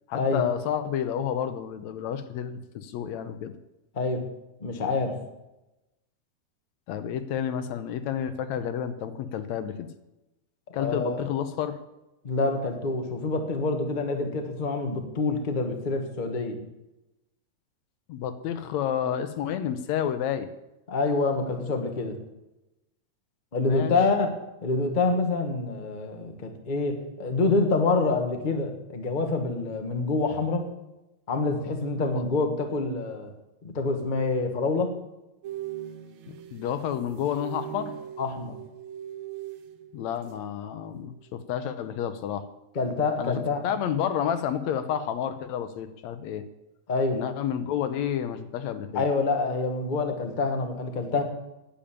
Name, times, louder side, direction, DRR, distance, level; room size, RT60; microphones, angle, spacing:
voice 1, 0.1-3.5 6.9-9.9 10.7-11.8 18.1-20.5 23.6-23.9 32.1-32.2 36.5-37.9 39.9-42.5 43.2-43.4 43.6-46.4 47.1-49.1, left 9 dB, 75° left, 10 dB, 2.0 m, -30 dB
voice 2, 4.6-5.1 10.7-11.2 12.2-16.6 20.9-22.2 23.5-24.3 24.6-30.6 31.3-33.3 33.6-34.9 38.2-38.6 42.7-43.6 46.9-47.2 48.9-51.2, left 3 dB, 30° left, 5 dB, 0.9 m, -26 dB
sound 1, 35.4-40.6 40.8-41.1, right 11 dB, 65° right, 1.3 m, -40 dB
10.5 x 8.7 x 8.8 m, 0.96 s
omnidirectional pair, 3.3 m